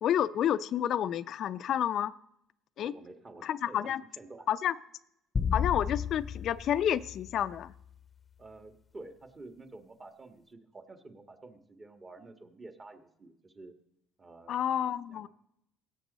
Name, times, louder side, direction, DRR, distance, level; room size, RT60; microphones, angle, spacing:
voice 1, 0.0-2.1 2.8-2.9 3.4-4.0 4.5-4.7 5.5-7.7 14.5-15.3, left 10 dB, 60° left, 14 dB, 0.5 m, -29 dB
voice 2, 2.8-4.5 8.4-13.7 14.2-14.6 15.1-15.3, right 2 dB, 30° right, 6 dB, 1.5 m, -50 dB
sound 1, 5.3-7.8, left 7 dB, 30° left, 0.8 m, -33 dB
17.5 x 7.3 x 4.1 m, 0.79 s
supercardioid pair, 80°, 0 cm